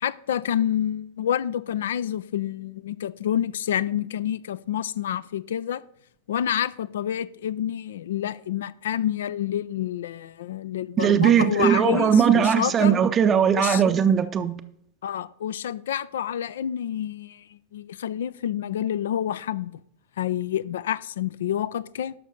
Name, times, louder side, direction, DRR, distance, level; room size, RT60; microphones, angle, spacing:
voice 1, 0.0-5.8 6.3-13.0 13.5-13.8 15.0-17.4 17.7-19.7 20.2-22.1, left 10 dB, 60° left, 0.4 m, -28 dB
voice 2, 11.0-14.6, right 8 dB, 25° right, 0.6 m, -19 dB
11.5 x 6.0 x 5.3 m
figure-of-eight pair, 90°, 0 cm